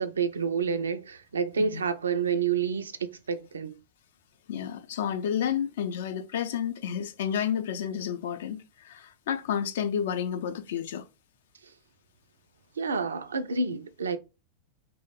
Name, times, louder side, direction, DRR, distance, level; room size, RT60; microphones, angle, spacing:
voice 1, 0.0-3.8 12.8-14.2, right 5 dB, 70° right, 0.3 m, -29 dB
voice 2, 4.5-11.0, left 8 dB, 60° left, 0.4 m, -31 dB
2.9 x 2.1 x 3.8 m
figure-of-eight pair, 90°, 0 cm